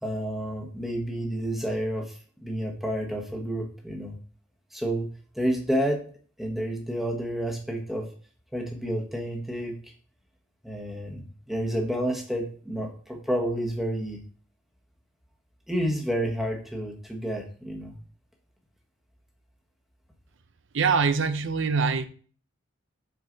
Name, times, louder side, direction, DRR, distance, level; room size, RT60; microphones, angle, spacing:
voice 1, 0.0-4.2 4.7-5.1 5.3-6.0 6.4-8.1 8.5-9.9 10.6-14.2 15.7-18.0, equal, ahead, 1.3 m, -30 dB
voice 2, 20.7-22.1, right 5 dB, 55° right, 0.6 m, -23 dB
7.8 x 4.6 x 4.0 m
head